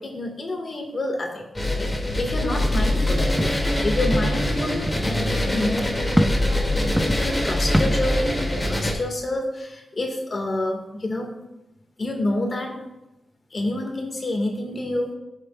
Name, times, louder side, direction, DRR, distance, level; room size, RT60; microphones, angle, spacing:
voice 1, 0.0-6.7 7.0-11.3 12.0-12.8 13.5-15.1, left 2 dB, 50° left, 1 dB, 2.0 m, -28 dB
sound 1, 1.5-8.9, left 1 dB, 20° left, 2.6 m, -23 dB
sound 2, 2.6-3.1 3.4-3.6 3.9-4.4 4.7-5.2 5.8-5.9 6.2-6.4 6.7-8.0, equal, ahead, 0.6 m, -25 dB
14.0 x 6.6 x 2.5 m, 0.95 s
cardioid pair, 60°, 0 cm